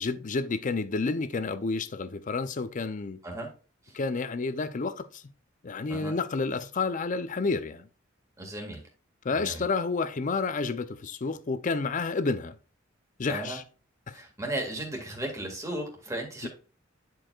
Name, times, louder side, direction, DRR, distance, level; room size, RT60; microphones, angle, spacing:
voice 1, 0.0-3.2 3.9-5.2 5.6-7.9 9.2-12.5 13.2-13.6 14.1-14.2 16.4-16.5, left 4 dB, 40° left, 0.5 m, -30 dB
voice 2, 8.4-8.8 9.3-9.6 13.3-13.6 14.1-16.5, right 1 dB, 15° right, 2.0 m, -35 dB
10.0 x 4.6 x 2.3 m
head